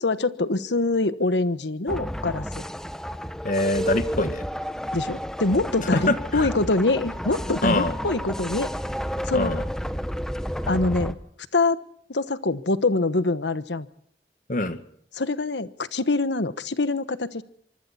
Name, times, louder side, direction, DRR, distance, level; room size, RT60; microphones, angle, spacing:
voice 1, 0.0-2.5 4.9-8.7 9.3-9.5 10.7-11.2 11.5-11.8 12.1-13.9 15.1-17.4, left 2 dB, 90° left, 14 dB, 1.2 m, -24 dB
sound 1, 1.9-11.1, equal, 5° left, 1.0 m, -31 dB
voice 2, 3.4-4.4 5.9-6.5 7.6-7.9 9.3-9.6 14.5-14.8, left 2 dB, 45° left, 11 dB, 1.6 m, -24 dB
25.0 x 24.5 x 4.2 m, 0.68 s
head